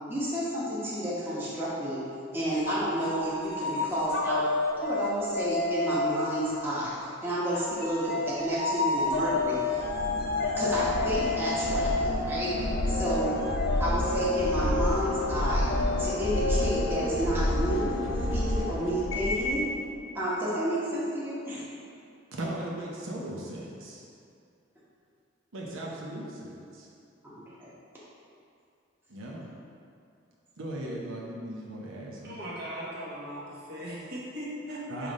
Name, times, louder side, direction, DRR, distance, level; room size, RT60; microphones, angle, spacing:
voice 1, 0.1-2.0 2.3-4.5 4.8-7.0 7.2-9.9 10.6-12.5 12.9-13.4 13.8-17.9 18.3-19.6 20.1-21.6 27.2-27.3 27.6-27.7, equal, 10° right, -9 dB, 1.0 m, -31 dB
sound 1, 2.6-6.6 7.5-18.8, left 3 dB, 45° left, 0.6 m, -31 dB
sound 2, 9.1-19.7, left 1 dB, 80° left, 0.7 m, -30 dB
voice 2, 22.3-24.0 25.5-26.9 29.1-29.5 30.6-32.4 34.9-35.1, right 1 dB, 80° right, -4 dB, 0.9 m, -38 dB
voice 3, 32.2-34.8, equal, 50° right, -6 dB, 1.4 m, -38 dB
5.8 x 3.4 x 5.2 m, 2.4 s
head